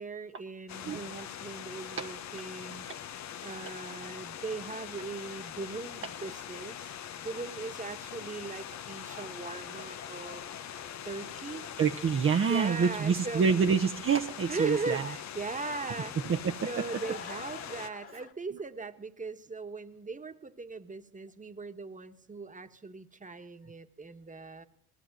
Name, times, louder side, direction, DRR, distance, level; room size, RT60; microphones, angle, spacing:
voice 1, 0.0-2.8 3.4-10.4 11.0-11.7 12.5-13.5 14.5-16.3 16.6-24.6, right 3 dB, 25° right, 9 dB, 1.6 m, -39 dB
sound 1, 0.7-17.9, left 10 dB, 65° left, 1.1 m, -43 dB
sound 2, 9.0-18.3, left 5 dB, 45° left, 2.3 m, -51 dB
voice 2, 11.8-15.1 16.2-16.6, right 6 dB, 45° right, 4 dB, 1.1 m, -26 dB
19.0 x 15.5 x 9.2 m, 0.68 s
cardioid pair, 90°, 30 cm